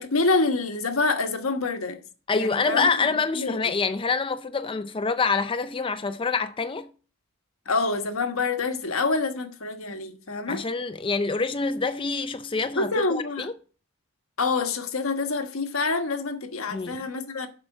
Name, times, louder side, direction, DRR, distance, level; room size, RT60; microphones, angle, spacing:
voice 1, 0.0-2.0 2.3-2.9 3.3-3.6 7.7-10.6 12.7-13.5 14.4-17.5, left 3 dB, 85° left, 1.3 m, -26 dB
voice 2, 2.3-6.9 10.5-13.5 16.7-17.0, left 4 dB, 25° left, 0.4 m, -26 dB
7.5 x 5.7 x 7.2 m
head